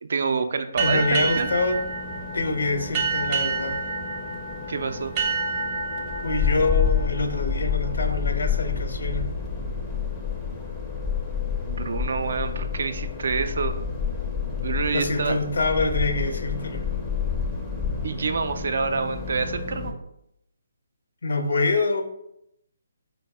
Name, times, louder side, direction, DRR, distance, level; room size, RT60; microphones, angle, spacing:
voice 1, 0.0-1.5 4.7-5.2 11.7-13.8 14.6-15.4 18.0-20.0, right 4 dB, 60° right, 8 dB, 0.3 m, -27 dB
voice 2, 0.8-1.8 2.3-3.8 6.2-9.3 14.9-16.8 21.2-22.0, left 3 dB, 70° left, 5 dB, 0.5 m, -25 dB
sound 1, 0.8-19.9, left 6 dB, 10° left, 0.4 m, -29 dB
sound 2, 0.8-8.1, right 4 dB, 25° right, 0.7 m, -29 dB
3.9 x 2.0 x 3.4 m, 0.78 s
figure-of-eight pair, 145°, 0 cm